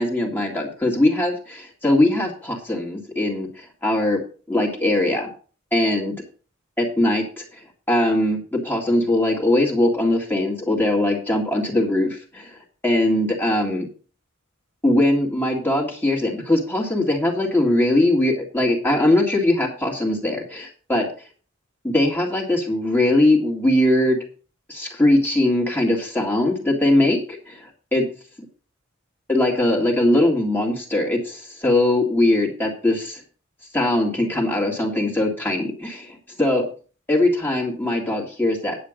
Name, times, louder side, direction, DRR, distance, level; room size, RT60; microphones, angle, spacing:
voice 1, 0.0-4.2 4.5-5.3 5.7-6.2 6.8-7.4 7.9-12.6 12.8-13.9 14.8-21.1 21.8-24.2 24.7-28.1 29.3-33.2 33.7-36.7 37.1-38.8, left 1 dB, 10° left, -1 dB, 2.0 m, -21 dB
9.6 x 7.4 x 5.0 m, 0.39 s
head